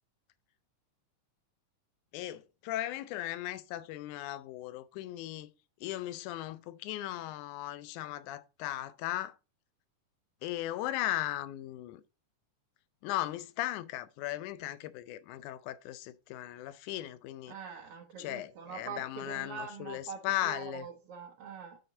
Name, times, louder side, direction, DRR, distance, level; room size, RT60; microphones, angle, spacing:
voice 1, 2.1-5.5 5.8-9.4 10.4-12.0 13.0-17.5 18.2-20.9, left 14 dB, 80° left, 2.0 m, -37 dB
voice 2, 17.5-21.8, right 6 dB, 65° right, 1.6 m, -44 dB
10.5 x 4.3 x 3.7 m
omnidirectional pair, 3.7 m